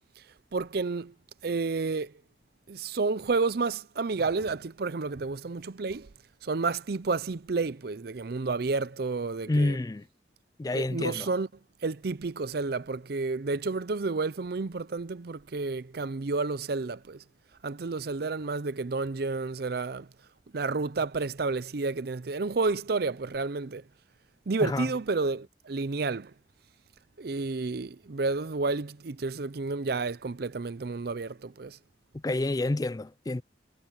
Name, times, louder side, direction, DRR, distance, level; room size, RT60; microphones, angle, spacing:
voice 1, 0.5-1.1 1.4-2.1 2.7-6.1 6.4-9.8 10.7-11.5 11.8-17.2 17.6-20.1 20.5-23.8 24.5-26.3 27.2-31.8, right 3 dB, 55° right, 0.6 m, -30 dB
voice 2, 9.5-10.0 10.6-11.3 24.6-24.9 32.2-33.4, left 2 dB, 20° left, 0.3 m, -28 dB
head